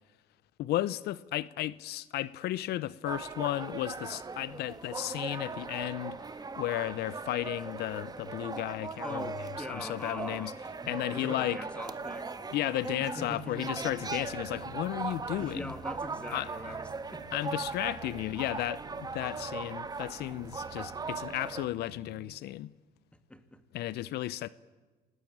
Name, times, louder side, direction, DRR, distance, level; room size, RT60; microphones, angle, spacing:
voice 1, 0.6-6.2 6.6-9.3 9.7-10.5 10.9-11.6 12.5-15.7 16.3-16.7 17.3-22.7 23.7-24.5, left 14 dB, 75° left, 0.7 m, -34 dB
sound 1, 3.0-21.7, right 4 dB, 25° right, 1.5 m, -39 dB
voice 2, 9.0-10.5 11.1-12.5 13.0-14.1 15.4-17.3 23.3-23.6, left 1 dB, 5° left, 2.4 m, -42 dB
sound 2, 13.8-22.3, right 8 dB, 70° right, 1.7 m, -52 dB
27.0 x 19.0 x 8.8 m
cardioid pair, 110°, 17 cm